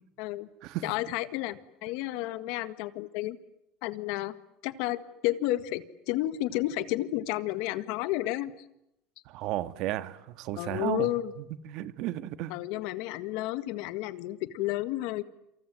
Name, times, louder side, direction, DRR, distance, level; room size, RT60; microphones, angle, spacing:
voice 1, 0.2-0.5 0.8-3.4 3.8-4.3 4.6-8.5 10.6-11.3 12.5-15.2, left 16 dB, 75° left, 12 dB, 1.7 m, -31 dB
voice 2, 9.3-11.1 11.4-12.5, right 14 dB, 65° right, 11 dB, 1.7 m, -34 dB
28.0 x 27.5 x 7.7 m, 0.83 s
cardioid pair, 130°, 0 cm